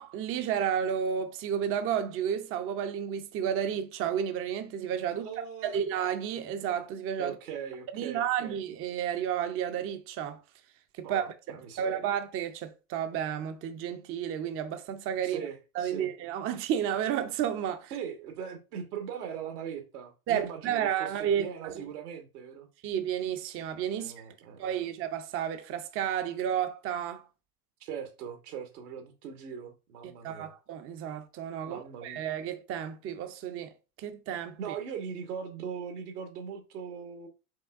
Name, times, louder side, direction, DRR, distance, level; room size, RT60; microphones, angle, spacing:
voice 1, 0.0-5.3 5.6-7.4 7.9-10.4 11.0-11.2 11.8-15.5 15.7-17.9 20.3-21.8 22.8-24.1 24.6-27.2 30.0-33.7 34.0-34.8, right 9 dB, 30° right, 0.5 m, -32 dB
voice 2, 5.1-5.8 7.2-8.6 11.0-12.0 15.2-16.1 17.9-22.7 24.0-24.9 27.8-30.5 31.6-32.2 34.6-37.3, right 7 dB, 80° right, 1.3 m, -40 dB
5.3 x 3.3 x 2.4 m
hypercardioid pair, 95°, 45 cm